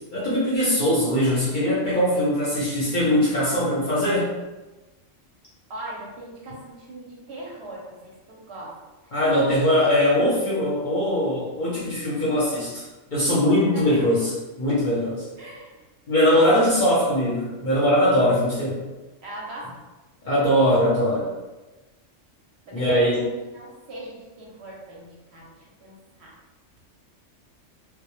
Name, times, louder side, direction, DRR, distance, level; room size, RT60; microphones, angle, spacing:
voice 1, 0.1-4.3 9.1-12.8 13.1-15.3 16.1-18.8 20.2-21.3 22.7-23.2, equal, 50° left, -7 dB, 0.6 m, -21 dB
voice 2, 5.7-8.7 13.7-14.0 15.4-15.7 16.3-16.9 19.2-19.7 22.7-26.3, right 1 dB, 65° right, -4 dB, 0.8 m, -40 dB
2.1 x 2.0 x 2.9 m, 1.1 s
omnidirectional pair, 1.3 m